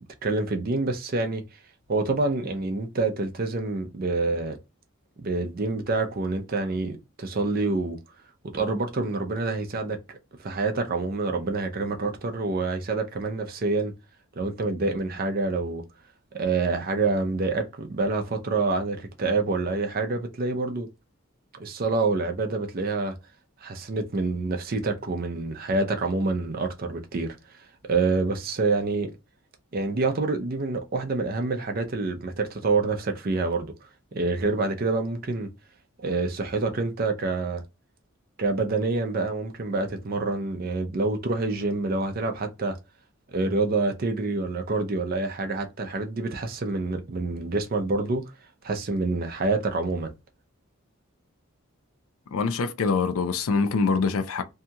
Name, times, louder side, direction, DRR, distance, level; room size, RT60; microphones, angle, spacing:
voice 1, 0.2-1.4 1.9-4.6 5.2-8.0 8.5-13.9 14.4-15.8 16.3-20.9 21.6-23.1 23.6-27.4 27.9-29.1 29.7-33.7 34.1-35.5 36.0-37.6 38.4-42.8 43.3-48.2 48.6-50.1, right 3 dB, 45° right, 0.5 m, -27 dB
voice 2, 52.3-54.4, left 4 dB, 90° left, 0.4 m, -24 dB
2.7 x 2.3 x 2.7 m
head